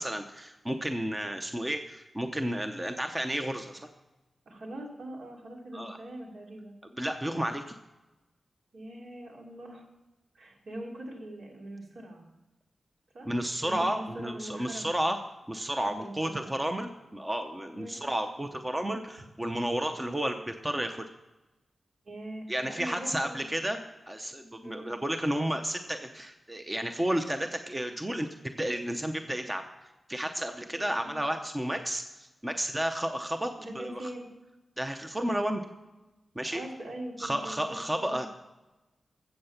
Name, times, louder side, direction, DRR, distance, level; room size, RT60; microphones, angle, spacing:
voice 1, 0.0-3.9 5.7-6.0 7.0-7.7 13.3-15.2 15.5-21.0 22.5-29.6 30.1-34.1 34.8-35.6 36.4-36.6 37.2-38.3, right 1 dB, 10° right, 6 dB, 0.7 m, -32 dB
voice 2, 4.5-6.8 8.7-9.9 10.3-12.2 13.1-13.3 13.6-15.1 15.8-16.6 17.7-18.0 22.0-23.5 24.6-24.9 30.7-31.2 33.6-34.3 36.5-38.3, right 1 dB, 70° right, 0 dB, 2.8 m, -42 dB
14.5 x 7.8 x 5.8 m, 1.1 s
wide cardioid pair, 175°, 0 cm